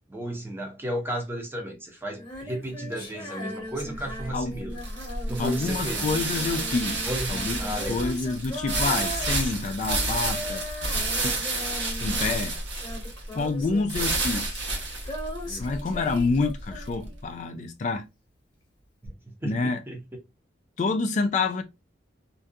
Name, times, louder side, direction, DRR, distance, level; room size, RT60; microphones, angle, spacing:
voice 1, 0.1-4.8 5.3-6.0 7.1-8.0 15.5-15.7 19.0-19.1 19.4-20.0, right 1 dB, 10° right, 0.6 m, -34 dB
Female singing, 2.1-17.5 19.1-19.2, left 1 dB, 25° left, 0.9 m, -39 dB
sound 1, 4.0-17.1, right 2 dB, 70° right, 1.0 m, -30 dB
voice 2, 4.3-4.6 5.4-7.6 7.9-10.6 11.2-11.5 12.0-12.5 13.3-14.6 15.6-18.1 19.4-19.8 20.8-21.6, left 3 dB, 40° left, 0.3 m, -28 dB
2.6 x 2.3 x 2.2 m
head